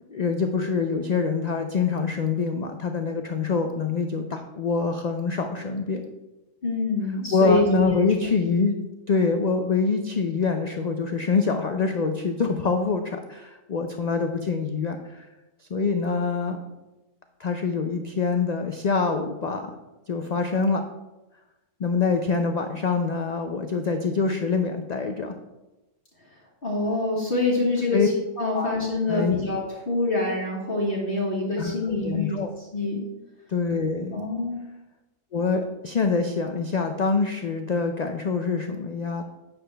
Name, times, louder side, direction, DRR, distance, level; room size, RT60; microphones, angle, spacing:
voice 1, 0.1-6.0 7.3-8.8 9.1-15.3 15.7-16.6 17.4-19.7 20.1-20.8 21.8-25.3 27.9-28.1 28.5-28.7 29.1-29.4 31.6-32.5 33.5-34.2 35.3-39.2, left 4 dB, 60° left, 5 dB, 0.4 m, -25 dB
voice 2, 6.6-7.9 8.2-8.3 26.6-32.4 32.7-33.0 34.1-34.6, left 2 dB, 45° left, -5 dB, 1.7 m, -25 dB
8.8 x 6.9 x 3.4 m, 1.0 s
omnidirectional pair, 1.4 m